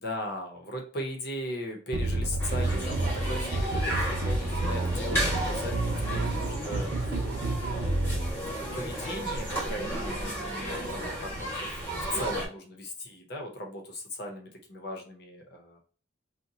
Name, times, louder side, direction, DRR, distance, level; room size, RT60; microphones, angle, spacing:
voice 1, 0.0-7.2 7.6-11.7 12.1-15.8, left 1 dB, 55° left, 1 dB, 0.8 m, -38 dB
sound 1, 1.9-8.3, right 2 dB, 60° right, 0.6 m, -30 dB
sound 2, 2.4-12.5, right 1 dB, 10° left, 1.0 m, -33 dB
2.7 x 2.2 x 3.9 m, 0.42 s
head